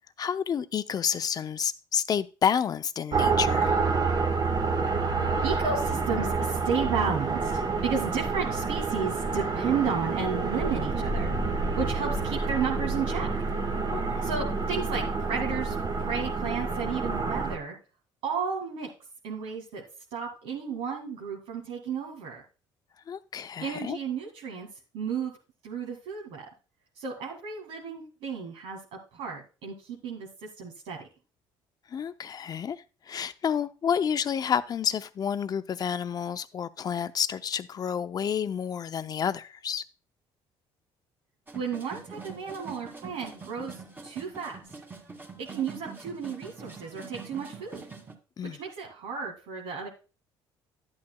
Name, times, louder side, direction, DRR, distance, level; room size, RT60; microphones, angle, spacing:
voice 1, 0.2-3.8 13.9-14.3 23.1-24.0 31.9-39.8 48.4-48.6, left 8 dB, 40° left, 0.6 m, -30 dB
sound 1, 3.1-17.6, right 4 dB, 45° right, 1.4 m, -28 dB
voice 2, 5.4-11.3 11.8-13.3 14.2-17.8 18.2-18.9 19.2-19.8 20.1-22.4 23.6-24.7 24.9-25.3 25.6-26.5 27.0-31.1 41.5-44.6 45.4-47.9 48.4-49.9, right 6 dB, 85° right, 1.9 m, -33 dB
sound 2, 41.5-48.1, right 4 dB, 20° right, 2.0 m, -44 dB
11.5 x 8.7 x 2.3 m
cardioid pair, 95°, 10 cm